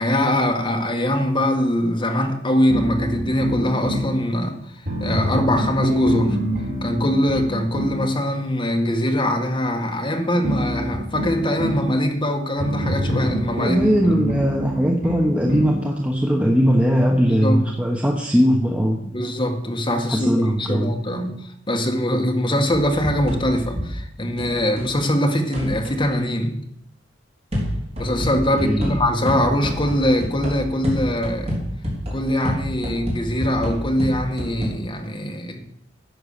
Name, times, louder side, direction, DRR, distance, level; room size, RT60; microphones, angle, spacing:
voice 1, 0.0-6.4 6.8-13.8 17.3-17.6 19.1-26.6 28.0-31.6 32.1-35.6, left 1 dB, 25° left, 3 dB, 1.8 m, -22 dB
sound 1, 2.7-4.1 4.9-8.0 10.4-11.9 12.6-15.8, equal, 50° right, 4.2 m, -26 dB
voice 2, 13.6-19.0 20.1-20.9 28.5-28.9, equal, 5° right, 1 dB, 1.1 m, -20 dB
sound 2, 22.7-25.0 25.5-26.1 27.5-34.7, equal, 30° right, 3.8 m, -29 dB
11.0 x 8.5 x 6.7 m, 0.74 s
head